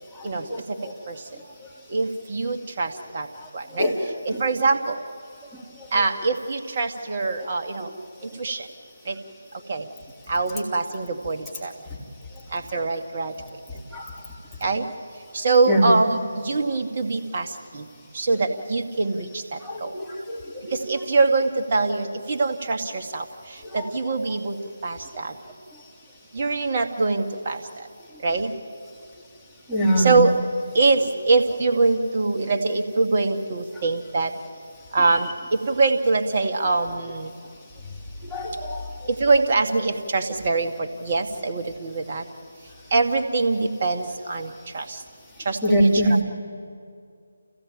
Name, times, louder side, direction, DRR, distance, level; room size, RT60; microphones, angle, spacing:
voice 1, 1.9-3.3 3.5-3.9 4.2-5.0 5.9-7.9 8.4-8.7 9.1-9.2 9.7-9.8 10.3-11.7 12.5-13.3 14.6-14.8 15.3-17.5 17.7-17.8 18.1-19.9 20.7-23.2 23.7-24.6 24.8-25.3 26.3-27.6 28.2-28.5 30.0-30.3 30.7-31.0 31.3-34.3 34.9-37.3 39.1-42.2 42.9-45.0 45.4-46.2, right 3 dB, 35° right, 4 dB, 1.6 m, -23 dB
voice 2, 19.6-20.4 20.7-20.8 29.7-30.2 38.3-38.8 45.6-46.1, equal, ahead, -9 dB, 2.8 m, -22 dB
29.0 x 15.5 x 9.0 m, 2.3 s
figure-of-eight pair, 155°, 0 cm